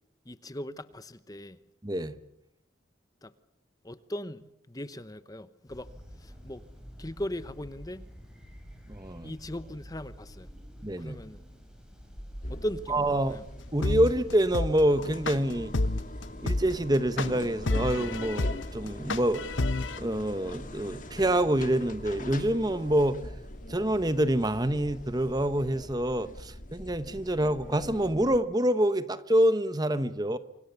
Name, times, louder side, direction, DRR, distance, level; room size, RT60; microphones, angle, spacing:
voice 1, 0.3-1.6 3.2-3.3 3.8-5.9 6.2-6.6 7.0-8.0 9.2-10.5 11.0-11.4 12.5-13.4, equal, 20° left, 0.9 m, -38 dB
voice 2, 1.8-2.2 8.9-9.3 10.8-11.2 12.9-13.4 13.7-15.7 16.4-19.4 20.0-23.2 23.7-30.4, right 1 dB, 20° right, 1.0 m, -26 dB
summer on the balcony, 5.7-25.6, equal, 5° right, 6.0 m, -49 dB
sound 1, 12.4-28.4, left 1 dB, 45° left, 2.4 m, -43 dB
sound 2, 13.8-20.0, left 2 dB, 85° left, 1.1 m, -29 dB
28.0 x 25.5 x 7.0 m
head